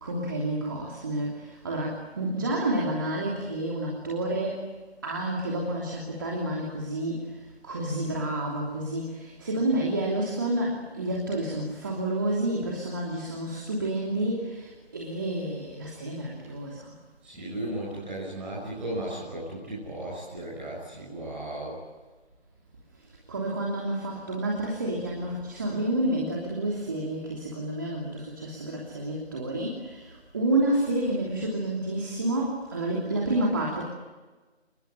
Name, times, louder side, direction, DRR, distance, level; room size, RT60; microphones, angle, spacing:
voice 1, 0.0-4.6 5.0-7.3 7.6-16.9 23.3-33.8, right 1 dB, 20° right, -2 dB, 2.9 m, -29 dB
voice 2, 17.2-21.8, right 1 dB, 5° right, -8 dB, 6.8 m, -35 dB
29.0 x 21.5 x 9.0 m, 1.2 s
figure-of-eight pair, 165°, 33 cm